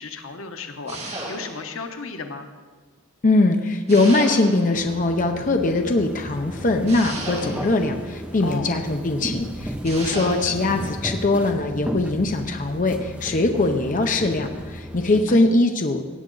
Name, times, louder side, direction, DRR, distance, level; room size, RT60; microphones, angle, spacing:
voice 1, 0.0-2.5 8.4-8.7 10.5-10.6 15.1-15.4, left 3 dB, 85° left, 6 dB, 1.0 m, -34 dB
sound 1, 0.9-1.8 3.9-4.8 6.9-7.9 9.8-10.6, right 2 dB, 30° right, 2.5 m, -34 dB
voice 2, 3.2-16.1, left 2 dB, 40° left, 5 dB, 0.7 m, -21 dB
sound 2, 4.7-15.2, right 1 dB, 5° right, 0.7 m, -34 dB
17.0 x 8.3 x 3.9 m, 1.4 s
head